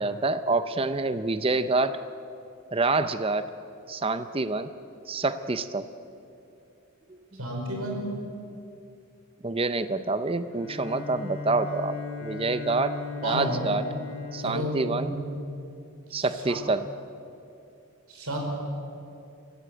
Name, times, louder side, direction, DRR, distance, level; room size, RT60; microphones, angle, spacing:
voice 1, 0.0-2.0 2.7-3.5 3.9-4.7 5.1-5.9 7.1-7.2 9.4-13.0 13.2-13.8 14.3-15.1 16.1-16.9, right 3 dB, 25° right, 12 dB, 0.6 m, -27 dB
voice 2, 7.3-8.1 13.2-13.6 14.4-15.1 16.1-16.6 18.1-18.4, equal, 80° right, 1 dB, 5.2 m, -31 dB
Bowed string instrument, 10.4-15.7, left 4 dB, 60° left, 3.5 m, -38 dB
23.5 x 15.5 x 7.9 m, 2.7 s
head